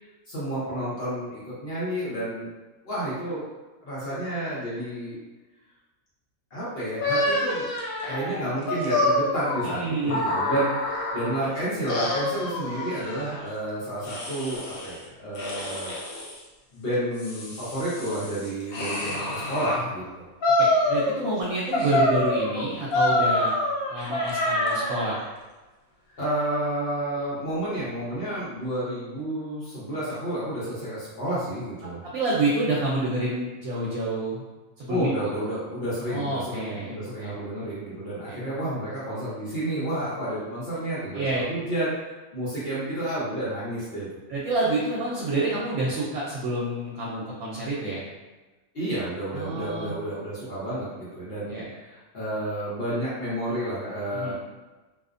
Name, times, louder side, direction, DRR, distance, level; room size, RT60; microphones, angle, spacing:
voice 1, 0.3-2.5 2.8-3.5 3.8-5.2 6.5-7.7 8.1-16.0 16.7-20.2 26.2-32.0 34.9-44.1 48.7-54.3, right 1 dB, 50° left, -9 dB, 0.9 m, -30 dB
sound 1, 7.0-11.5 11.9-13.4 14.0-15.0 15.3-16.4 16.9-19.8 20.4-21.4 21.7-25.2, left 1 dB, 80° left, 1.0 m, -26 dB
voice 2, 9.6-10.2 20.6-23.6 23.9-25.2 32.0-34.4 34.8-35.3 36.1-37.3 38.3-38.4 41.1-41.4 44.3-48.0 49.3-49.9 51.4-51.7 54.1-54.3, right 2 dB, 75° right, -6 dB, 1.0 m, -28 dB
2.5 x 2.1 x 2.4 m, 1.2 s
omnidirectional pair, 1.5 m